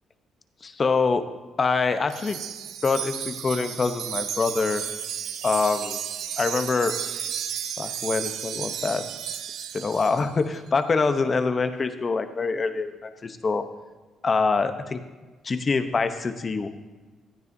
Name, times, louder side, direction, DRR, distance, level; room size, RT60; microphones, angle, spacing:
voice 1, 0.6-1.2 1.6-2.4 2.8-4.9 5.4-6.0 6.4-7.0 7.8-9.4 9.7-13.7 14.2-15.0 15.4-16.7, left 4 dB, 35° left, 9 dB, 0.8 m, -25 dB
Wind chime, 2.1-10.3, right 9 dB, 80° right, 0.5 m, -33 dB
15.0 x 9.4 x 2.7 m, 1.3 s
cardioid pair, 90°, 0 cm